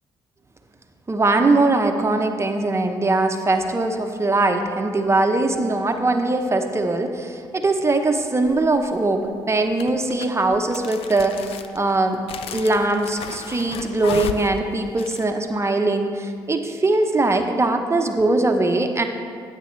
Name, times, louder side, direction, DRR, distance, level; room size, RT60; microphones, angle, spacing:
voice 1, 1.1-12.2 12.5-19.0, right 2 dB, 25° right, 4 dB, 0.9 m, -21 dB
sound 1, 8.4-8.9 9.7-15.2, left 8 dB, 70° left, 0.5 m, -34 dB
15.0 x 8.3 x 3.3 m, 2.2 s
supercardioid pair, 60°, 10 cm